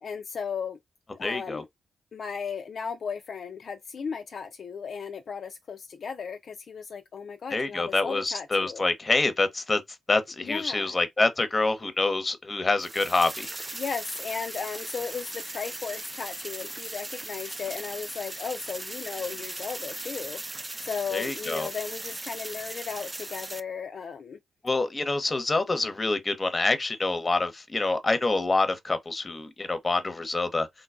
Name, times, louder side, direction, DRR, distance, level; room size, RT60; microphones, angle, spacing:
voice 1, 0.0-0.8 1.1-1.7 2.1-8.8 10.4-11.0 13.7-24.4, left 6 dB, 60° left, 0.3 m, -35 dB
voice 2, 1.2-1.6 7.5-9.8 10.1-13.5 21.1-21.7 24.6-30.7, left 3 dB, 30° left, 0.8 m, -26 dB
sound 1, 12.8-23.6, right 2 dB, 20° right, 0.4 m, -38 dB
3.8 x 2.3 x 2.4 m
supercardioid pair, 55°, 0 cm